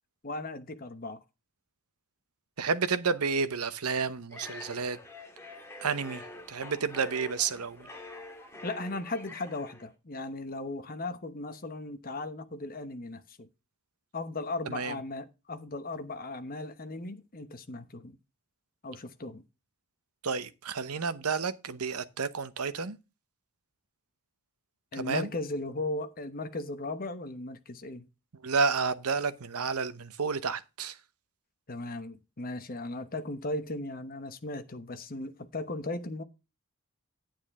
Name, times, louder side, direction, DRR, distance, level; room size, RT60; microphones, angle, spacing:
voice 1, 0.2-1.2 8.6-13.5 14.1-18.2 18.8-19.4 24.9-28.1 31.7-36.2, left 2 dB, 40° left, 1.0 m, -37 dB
voice 2, 2.6-5.0 5.8-6.2 6.5-7.9 14.7-14.9 20.2-23.0 25.0-25.3 28.4-31.0, right 5 dB, 85° right, 0.9 m, -30 dB
sound 1, 4.3-9.9, left 2 dB, 10° left, 1.8 m, -46 dB
9.5 x 8.9 x 3.6 m
head